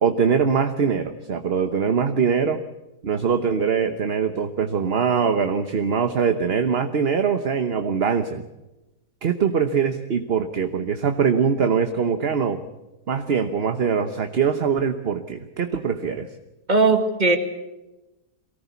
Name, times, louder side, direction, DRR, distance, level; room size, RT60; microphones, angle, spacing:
voice 1, 0.0-2.6 3.0-8.4 9.2-12.6 13.1-16.3, right 6 dB, 40° right, 8 dB, 1.1 m, -22 dB
voice 2, 16.7-17.4, right 3 dB, 25° right, 6 dB, 2.2 m, -18 dB
23.5 x 18.0 x 8.3 m, 1.0 s
omnidirectional pair, 1.8 m